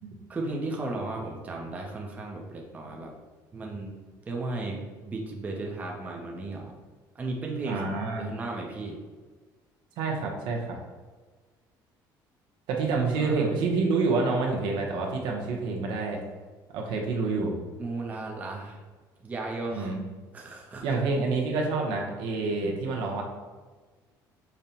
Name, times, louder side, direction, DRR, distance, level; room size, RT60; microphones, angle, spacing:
voice 1, 0.3-3.1 3.5-4.0 4.3-6.8 7.1-7.8 8.2-9.0 13.2-13.5 17.8-18.8 19.2-19.9 20.3-20.9, right 2 dB, 20° right, 0 dB, 0.5 m, -35 dB
voice 2, 7.6-8.3 10.0-10.8 12.7-16.2 16.7-17.5 19.7-20.0 20.8-23.2, right 3 dB, 75° right, 0 dB, 0.7 m, -28 dB
5.2 x 2.1 x 2.8 m, 1.4 s
cardioid pair, 145°, 8 cm